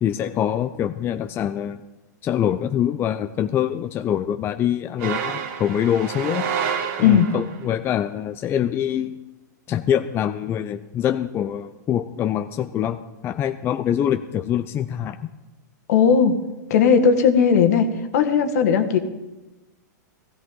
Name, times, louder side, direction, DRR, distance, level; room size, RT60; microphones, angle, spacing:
voice 1, 0.0-1.8 2.2-6.5 7.0-9.2 9.7-15.3, left 10 dB, 25° left, 9 dB, 0.5 m, -24 dB
sound 1, 5.0-7.6, right 7 dB, 55° right, 1.9 m, -28 dB
voice 2, 15.9-16.4 16.7-19.0, left 6 dB, 60° left, 7 dB, 1.7 m, -17 dB
16.0 x 16.0 x 3.8 m, 1.1 s
hypercardioid pair, 130°, 10 cm